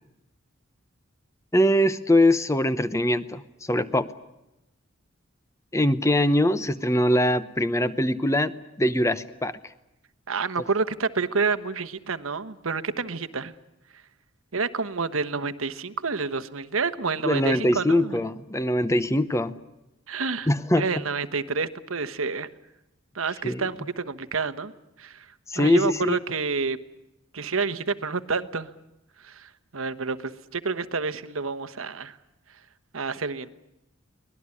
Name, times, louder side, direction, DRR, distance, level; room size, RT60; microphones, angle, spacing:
voice 1, 1.5-4.1 5.7-8.5 8.8-9.6 17.2-19.6 20.5-20.8 23.4-23.7 25.5-26.2, left 1 dB, 15° left, 13 dB, 0.8 m, -22 dB
voice 2, 10.3-13.5 14.5-18.2 20.1-20.5 20.8-22.5 23.1-24.7 25.0-25.3 25.5-26.8 27.3-28.7 29.2-32.2 32.9-33.5, right 4 dB, 85° right, 12 dB, 1.2 m, -29 dB
24.0 x 19.0 x 9.8 m, 0.93 s
head